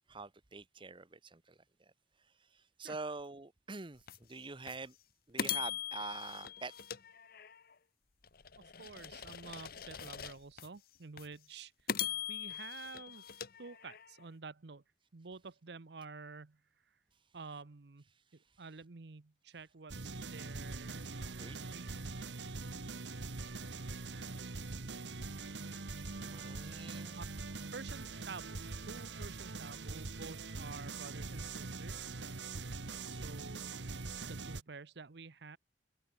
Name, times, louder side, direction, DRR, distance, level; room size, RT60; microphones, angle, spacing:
voice 1, 0.1-1.9 2.4-4.9 5.3-6.7 21.4-21.6 26.1-27.2 32.9-33.3, right 3 dB, 30° right, 1.0 m, -46 dB
sound 1, 4.1-4.2 4.7-4.8 5.4-7.7 8.2-10.7 11.2-11.3 11.9-14.2, left 9 dB, 55° left, 1.2 m, -41 dB
voice 2, 8.8-14.8 15.1-17.0 17.3-18.0 18.3-22.0 27.1-27.2 27.7-32.3 33.1-33.8 34.2-35.6, right 4 dB, 65° right, 0.8 m, -50 dB
sound 2, 19.9-34.6, right 3 dB, 80° right, 1.4 m, -43 dB
open air
head